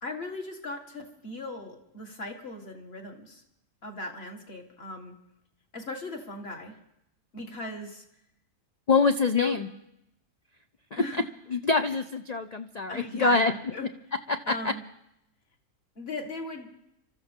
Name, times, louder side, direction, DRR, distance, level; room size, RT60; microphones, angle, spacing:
voice 1, 0.0-3.4 3.8-5.1 5.7-6.8 7.3-8.0 9.3-9.6 11.0-11.2 12.9-13.9 14.5-14.8 16.0-16.7, left 2 dB, 40° left, 2 dB, 2.3 m, -37 dB
voice 2, 8.9-9.7 10.9-11.0 11.5-13.5 14.3-14.4 14.6-14.7, left 4 dB, 75° left, 8 dB, 0.3 m, -24 dB
26.5 x 13.5 x 3.6 m, 0.81 s
omnidirectional pair, 1.6 m